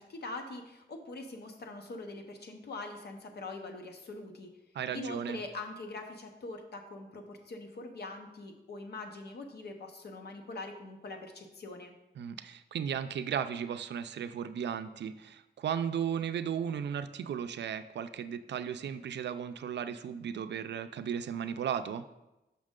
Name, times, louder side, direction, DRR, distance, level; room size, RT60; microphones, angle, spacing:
voice 1, 0.0-4.5 4.9-11.9, left 2 dB, 65° left, 4 dB, 0.9 m, -43 dB
voice 2, 4.7-5.4 12.2-22.0, right 8 dB, 75° right, 11 dB, 0.4 m, -35 dB
6.4 x 5.7 x 3.7 m, 0.96 s
wide cardioid pair, 155°, 18 cm